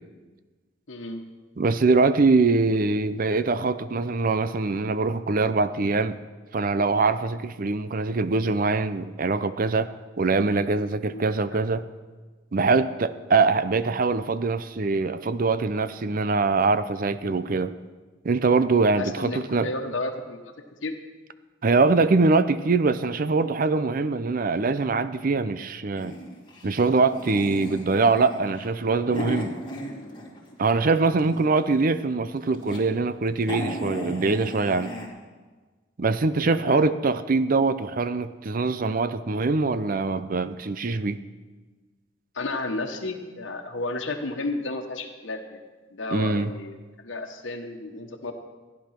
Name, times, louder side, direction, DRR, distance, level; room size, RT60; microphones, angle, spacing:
voice 1, 0.9-1.2 11.1-11.2 11.5-11.7 19.0-20.5 20.8-21.0 36.5-36.8 42.3-45.6 45.9-48.3, left 2 dB, 80° left, 3 dB, 1.3 m, -32 dB
voice 2, 1.6-6.2 6.5-11.9 12.5-17.7 18.2-19.7 21.6-26.2 26.6-29.6 30.6-35.0 36.0-41.2 46.1-46.5, right 3 dB, 45° right, 13 dB, 0.5 m, -23 dB
sound 1, 26.0-30.6 30.9-31.7 32.3-32.8 33.1-33.2 33.4-35.1, equal, 25° left, 2.5 m, -36 dB
15.0 x 10.5 x 5.9 m, 1.3 s
head